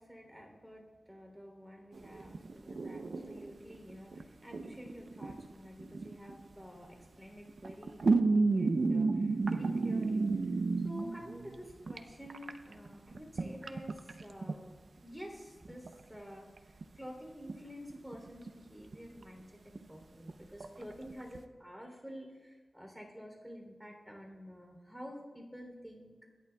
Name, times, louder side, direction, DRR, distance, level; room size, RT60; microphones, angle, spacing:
voice 1, 0.0-10.5 10.8-14.7 15.0-26.2, equal, ahead, 1 dB, 3.2 m, -49 dB
sound 1, 2.0-4.2 4.5-6.5 7.5-12.0 12.3-14.5 15.7-15.9 16.1-16.2 16.6-17.1 17.5-17.6 17.9-18.5 18.9-19.4 19.8-19.9 20.3-20.4 20.6-21.4, right 3 dB, 80° right, 0.7 m, -32 dB
25.5 x 11.0 x 2.3 m, 1.4 s
wide cardioid pair, 80°, 0 cm